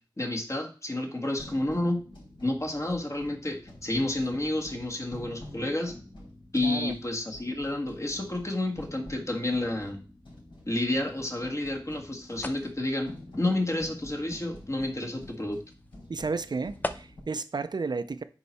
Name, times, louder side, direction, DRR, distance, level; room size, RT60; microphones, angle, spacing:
voice 1, 0.2-2.0 2.4-5.9 6.5-10.0 10.7-15.6, left 1 dB, 35° left, 1.7 m, -30 dB
sound 1, 1.4-17.2, left 1 dB, 75° left, 5.1 m, -48 dB
voice 2, 6.6-6.9 16.1-18.2, right 4 dB, 55° right, 0.5 m, -32 dB
sound 2, 11.0-17.4, left 1 dB, 20° left, 0.6 m, -43 dB
9.6 x 4.6 x 4.2 m
wide cardioid pair, 70°, 9 cm